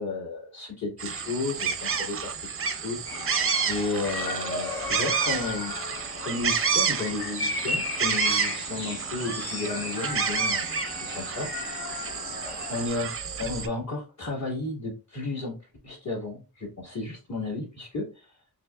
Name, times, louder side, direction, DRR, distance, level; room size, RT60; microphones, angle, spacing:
voice 1, 0.0-2.3 2.7-3.0 3.7-5.7 6.2-10.8 11.1-11.9 12.7-13.1 13.4-15.6 15.8-18.1, left 3 dB, 45° left, -4 dB, 1.8 m, -33 dB
sound 1, 1.0-13.7, right 6 dB, 35° right, 0.4 m, -30 dB
sound 2, 3.1-12.9, left 3 dB, 70° left, 0.9 m, -35 dB
4.4 x 2.9 x 2.3 m, 0.31 s
wide cardioid pair, 115°, 39 cm